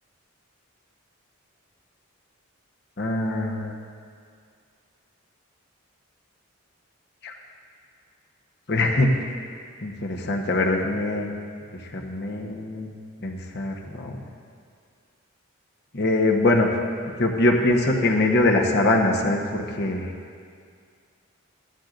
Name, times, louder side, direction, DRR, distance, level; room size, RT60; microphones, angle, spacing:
voice 1, 3.0-3.7 7.2-7.3 8.7-9.2 9.8-11.3 11.9-12.9 13.2-14.2 15.9-16.7 17.2-20.1, left 2 dB, 50° left, 1 dB, 1.1 m, -23 dB
16.5 x 12.0 x 2.6 m, 2.2 s
head